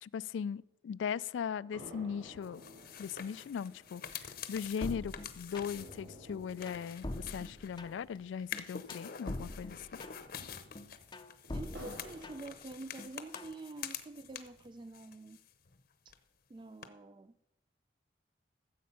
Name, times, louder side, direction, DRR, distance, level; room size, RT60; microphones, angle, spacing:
voice 1, 0.0-2.6 3.0-4.0 4.5-10.0, left 7 dB, 80° left, 0.3 m, -39 dB
sound 1, 1.7-9.3 9.6-9.7 10.1-13.5 14.0-15.0, equal, 80° right, 4.2 m, -55 dB
sound 2, 2.4-7.9 8.4-14.7 14.9-15.8 16.1-16.2 16.8-16.9, left 8 dB, 55° left, 0.8 m, -47 dB
sound 3, 4.8-5.9 6.3-8.2 8.5-10.4 10.7-12.6 13.0-13.6, left 1 dB, 25° left, 0.5 m, -44 dB
voice 2, 11.5-15.4 16.5-17.4, right 2 dB, 25° right, 0.3 m, -47 dB
14.5 x 7.6 x 5.5 m
head